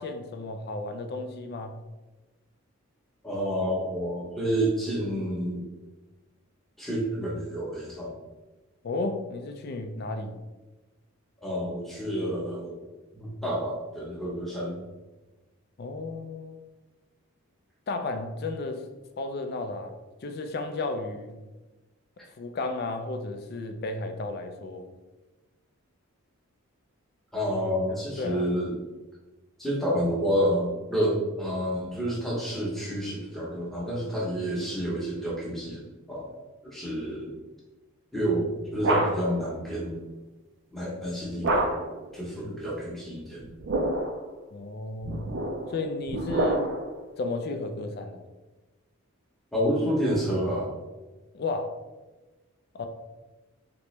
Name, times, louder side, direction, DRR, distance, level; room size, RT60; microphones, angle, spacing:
voice 1, 0.0-1.8 8.8-10.4 15.8-16.6 17.9-18.8 19.2-19.9 20.2-21.4 22.4-24.9 28.2-28.4 42.4-42.6 44.5-45.3 45.7-46.7 47.2-48.2 51.3-51.7 52.7-52.9, left 3 dB, 45° left, 7 dB, 0.3 m, -33 dB
voice 2, 3.2-5.6 6.8-8.2 11.4-12.7 13.1-14.8 27.3-28.8 29.6-36.3 36.6-37.3 38.1-40.0 40.7-41.7 42.1-43.4 49.5-50.7, equal, ahead, -6 dB, 0.8 m, -29 dB
sound 1, 38.3-39.4 41.4-42.0 43.4-44.2 45.0-47.0, right 1 dB, 55° right, 0.4 m, -28 dB
3.3 x 2.9 x 3.1 m, 1.2 s
head